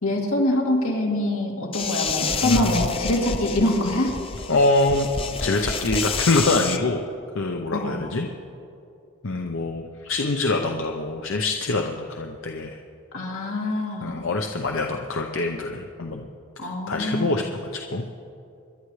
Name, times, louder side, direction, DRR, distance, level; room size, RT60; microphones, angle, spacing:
voice 1, 0.0-4.1 7.7-8.0 13.1-14.3 16.6-17.4, left 1 dB, 85° left, -1 dB, 2.4 m, -24 dB
sound 1, 1.7-6.8, left 5 dB, 25° left, 0.5 m, -29 dB
voice 2, 2.4-2.9 4.5-5.1 5.4-7.0 7.3-8.3 9.2-12.8 14.0-16.3 16.6-18.0, left 2 dB, 70° left, 3 dB, 0.7 m, -25 dB
26.5 x 11.5 x 3.2 m, 2.6 s
head